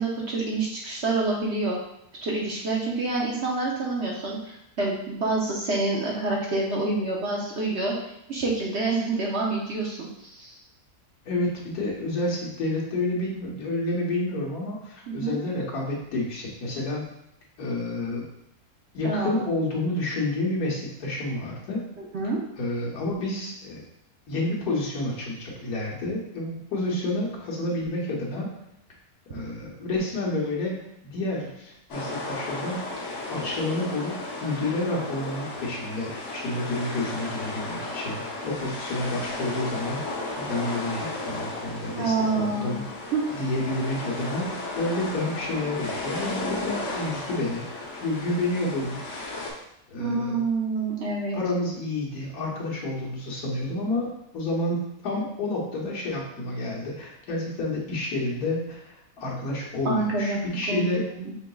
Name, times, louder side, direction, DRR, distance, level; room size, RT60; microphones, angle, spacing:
voice 1, 0.0-1.8 2.2-7.9 8.3-10.5 15.1-15.4 19.0-19.4 22.0-22.4 41.9-42.8 43.1-43.2 50.0-51.4 59.8-60.4 60.7-61.3, right 3 dB, 55° right, -3 dB, 0.9 m, -27 dB
voice 2, 11.2-17.1 17.6-18.2 18.9-21.8 22.6-23.8 24.3-28.5 29.3-33.0 33.3-34.1 34.4-42.9 43.3-49.0 49.9-50.4 51.3-61.0, left 2 dB, 80° left, -4 dB, 1.6 m, -29 dB
sound 1, 31.9-49.5, left 2 dB, 55° left, 1.2 m, -34 dB
5.8 x 3.8 x 2.3 m, 0.81 s
omnidirectional pair, 1.6 m